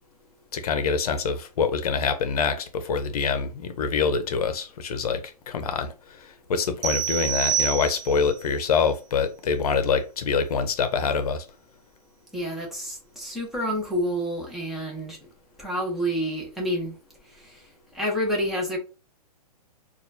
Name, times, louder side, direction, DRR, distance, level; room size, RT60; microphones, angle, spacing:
voice 1, 0.5-11.4, left 5 dB, 65° left, 0.8 m, -25 dB
sound 1, 6.8-8.3, right 9 dB, 85° right, 0.8 m, -27 dB
voice 2, 12.3-15.2 15.6-16.9 17.9-18.8, equal, ahead, 1.2 m, -28 dB
4.1 x 2.6 x 2.7 m
hypercardioid pair, 135°, 21 cm